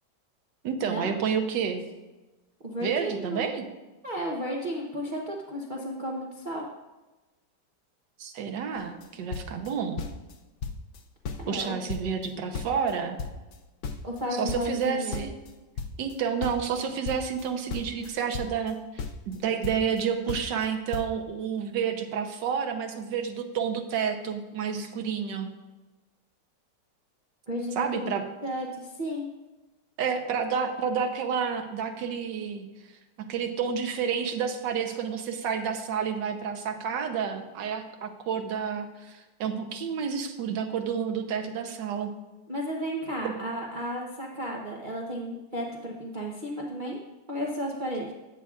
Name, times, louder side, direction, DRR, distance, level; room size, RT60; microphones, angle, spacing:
voice 1, 0.6-1.8 2.8-3.7 8.2-10.0 11.5-13.2 14.4-15.3 16.0-25.5 27.8-28.2 30.0-32.7 33.2-42.1 43.2-43.3, right 7 dB, 80° right, 6 dB, 1.5 m, -30 dB
voice 2, 2.6-3.5 4.0-6.6 11.4-11.7 14.0-15.2 27.5-28.1 28.4-29.3 42.5-47.0 47.3-48.1, equal, 35° right, -3 dB, 0.8 m, -33 dB
sound 1, 8.8-9.1 9.3-10.3 10.6-11.0 11.2-12.9 13.2-16.1 16.4-18.7 19.0-20.0 20.3-20.7 20.9-21.1, left 4 dB, 80° left, 0.6 m, -36 dB
13.0 x 8.4 x 2.4 m, 1.1 s
omnidirectional pair, 2.0 m